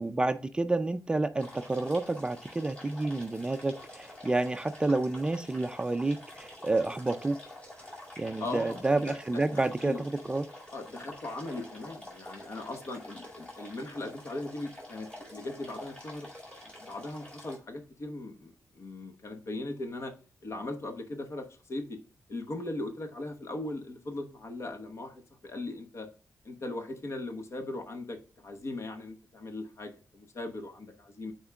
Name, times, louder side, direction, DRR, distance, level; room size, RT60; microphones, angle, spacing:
voice 1, 0.0-7.4 8.2-10.4, right 2 dB, 15° right, 0.3 m, -29 dB
sound 1, 1.4-17.6, left 1 dB, 20° left, 2.3 m, -47 dB
voice 2, 8.4-10.0 10.7-16.3 16.6-20.1 20.4-22.0 22.3-26.1 26.4-31.3, left 2 dB, 55° left, 1.1 m, -39 dB
9.6 x 4.4 x 2.3 m
wide cardioid pair, 145°, 6 cm